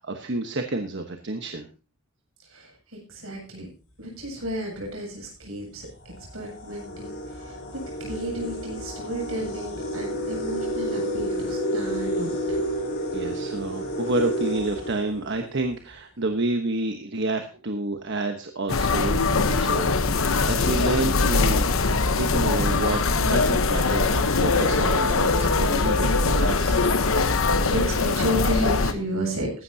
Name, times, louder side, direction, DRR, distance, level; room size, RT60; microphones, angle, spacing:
voice 1, 0.0-1.7 13.1-21.7 22.2-26.9, right 2 dB, 55° right, 4 dB, 1.2 m, -29 dB
voice 2, 2.5-3.7 4.0-7.6 8.0-12.6 27.6-29.6, equal, 80° right, 0 dB, 7.4 m, -32 dB
sound 1, 4.6-4.7 5.4-5.5 5.9-15.7, equal, 55° left, 4.1 m, -30 dB
sound 2, 18.7-28.9, left 3 dB, 75° left, 1.0 m, -22 dB
16.0 x 12.0 x 2.8 m, 0.33 s
head